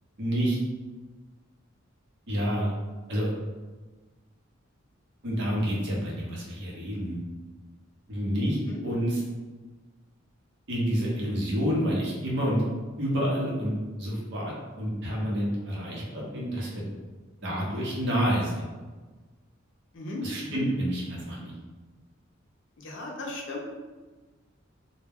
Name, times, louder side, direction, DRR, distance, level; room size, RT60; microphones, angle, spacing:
voice 1, 0.2-0.6 2.3-2.7 3.1-3.3 5.2-7.2 8.1-9.2 10.7-12.6 13.0-16.8 17.4-18.7 20.2-21.5, equal, 60° right, -5 dB, 0.8 m, -28 dB
voice 2, 19.9-20.6 22.8-23.6, left 2 dB, 60° left, -1 dB, 0.5 m, -37 dB
2.1 x 2.1 x 3.4 m, 1.3 s
head